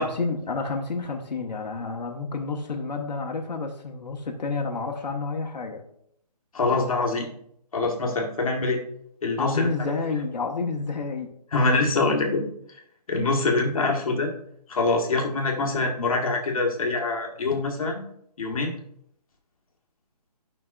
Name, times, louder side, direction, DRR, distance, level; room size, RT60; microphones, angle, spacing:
voice 1, 0.0-5.8 9.4-11.3, left 4 dB, 90° left, 1 dB, 1.2 m, -29 dB
voice 2, 6.5-7.3 7.7-8.8 9.2-9.7 11.5-12.5 13.1-14.3 14.7-18.0 18.4-18.7, left 3 dB, 55° left, 1 dB, 1.4 m, -24 dB
11.0 x 5.3 x 2.4 m, 0.69 s
hypercardioid pair, 170°, 21 cm